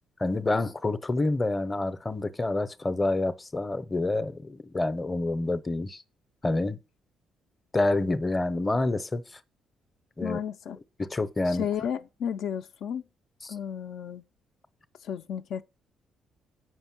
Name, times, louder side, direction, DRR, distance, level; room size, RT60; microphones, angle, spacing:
voice 1, 0.2-6.0 6.4-6.8 7.7-9.4 10.2-10.4 11.0-11.7, left 2 dB, 15° left, 0.6 m, -28 dB
voice 2, 10.2-10.8 11.5-13.0 13.5-14.2 15.0-15.6, left 8 dB, 70° left, 0.4 m, -33 dB
7.8 x 5.3 x 5.9 m
cardioid pair, 130°, 0 cm